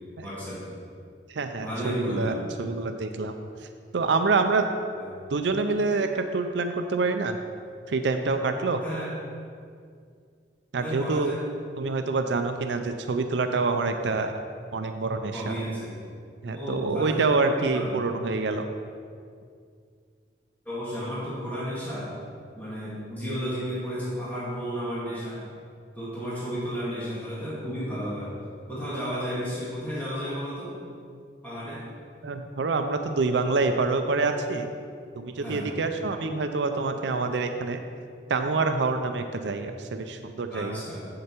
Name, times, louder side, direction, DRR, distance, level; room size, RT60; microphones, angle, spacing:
voice 1, 0.2-0.7 1.6-2.4 4.9-5.1 8.8-9.1 10.8-11.4 15.3-16.0 16.5-18.0 20.7-22.1 22.6-25.4 25.9-28.3 28.7-30.7 31.4-31.9 35.4-35.7 40.5-41.0, equal, 10° left, -10 dB, 1.8 m, -33 dB
voice 2, 1.3-3.3 3.9-4.7 5.3-7.4 7.9-8.8 10.7-11.4 11.8-14.3 14.7-15.5 16.4-18.7 32.2-34.7 35.2-37.8 38.3-40.8, right 3 dB, 75° right, 6 dB, 0.5 m, -26 dB
7.7 x 6.6 x 4.4 m, 2.2 s
head